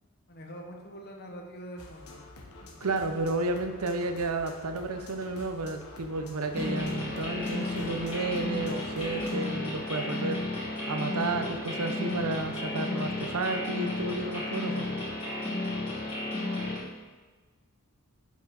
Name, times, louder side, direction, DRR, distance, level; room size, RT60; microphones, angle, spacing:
voice 1, 0.3-2.2 16.0-16.2, equal, 45° left, 1 dB, 1.2 m, -44 dB
sound 1, 1.8-9.4, left 2 dB, 70° left, 1.2 m, -48 dB
voice 2, 2.8-10.4 10.9-14.9, right 2 dB, 80° right, 7 dB, 0.7 m, -32 dB
sound 2, 6.5-16.8, left 2 dB, 25° left, 2.5 m, -33 dB
7.8 x 5.6 x 4.8 m, 1.3 s
head